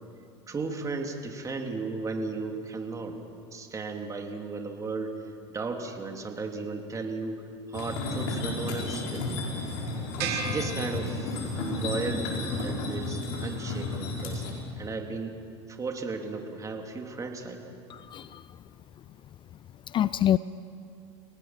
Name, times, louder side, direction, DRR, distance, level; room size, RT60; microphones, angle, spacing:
voice 1, 0.5-3.2 3.4-7.4 7.7-9.3 10.2-14.5 14.8-15.4 15.7-17.7, right 3 dB, 20° right, 3 dB, 2.9 m, -35 dB
sound 1, 7.7-14.5, left 2 dB, 65° left, 5.8 m, -32 dB
sound 2, 10.2-11.7, right 6 dB, 70° right, 4.6 m, -35 dB
voice 2, 17.9-18.5 19.9-20.4, left 11 dB, 35° left, 17 dB, 0.4 m, -26 dB
30.0 x 18.0 x 6.0 m, 2.4 s
hypercardioid pair, 100°, 15 cm